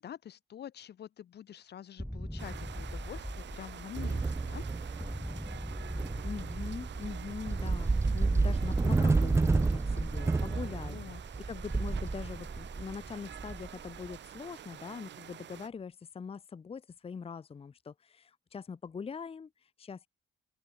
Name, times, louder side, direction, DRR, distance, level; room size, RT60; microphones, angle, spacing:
voice 1, 0.0-4.6 10.8-11.2, left 10 dB, 55° left, 1.0 m, -46 dB
sound 1, 2.0-4.3 5.0-7.3 8.3-10.6, equal, ahead, 0.9 m, -41 dB
sound 2, 2.4-15.7, right 10 dB, 65° right, 1.9 m, -48 dB
sound 3, 3.9-14.1, right 3 dB, 15° right, 0.4 m, -30 dB
voice 2, 6.2-11.0 11.4-20.1, left 6 dB, 30° left, 0.8 m, -42 dB
open air
cardioid pair, 90°, 20 cm